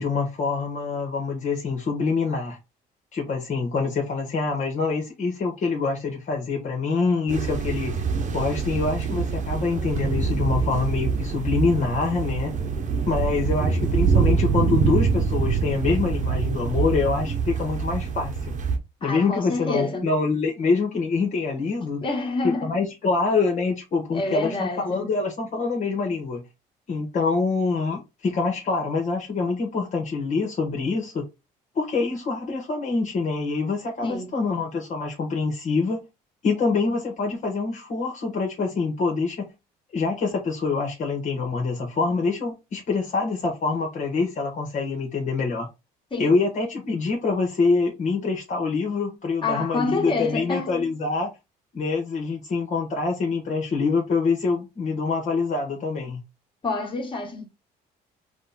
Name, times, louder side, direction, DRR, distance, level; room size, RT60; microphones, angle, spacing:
voice 1, 0.0-2.6 3.1-8.0 8.3-12.5 13.0-18.5 19.0-22.0 22.4-26.4 26.9-31.2 31.7-36.0 36.4-39.5 39.9-45.7 46.2-51.3 51.7-56.2, left 4 dB, 45° left, 1.4 m, -25 dB
sound 1, 7.3-18.8, right 5 dB, 45° right, 1.1 m, -25 dB
voice 2, 19.0-20.1 22.0-22.7 24.1-25.1 34.0-34.3 46.1-46.4 49.4-50.9 56.6-57.5, left 3 dB, 30° left, 1.9 m, -28 dB
5.1 x 2.3 x 4.1 m
cardioid pair, 110°, 17 cm